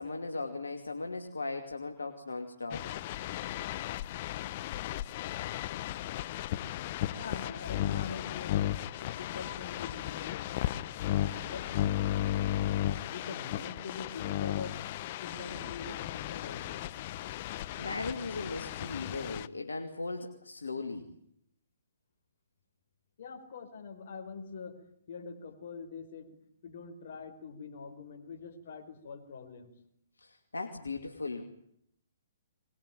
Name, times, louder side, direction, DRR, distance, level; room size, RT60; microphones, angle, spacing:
voice 1, 0.0-2.9 17.8-21.1 30.2-31.4, left 3 dB, 85° left, 5 dB, 2.6 m, -38 dB
sound 1, 2.7-19.5, left 13 dB, 45° left, 1.0 m, -35 dB
voice 2, 7.1-8.7 9.0-10.5 10.9-11.7 13.1-14.8 15.2-16.9 23.2-24.7 25.1-26.4 26.6-29.7, left 5 dB, 60° left, 6 dB, 5.2 m, -44 dB
23.0 x 21.0 x 9.2 m, 0.72 s
hypercardioid pair, 130°, 0 cm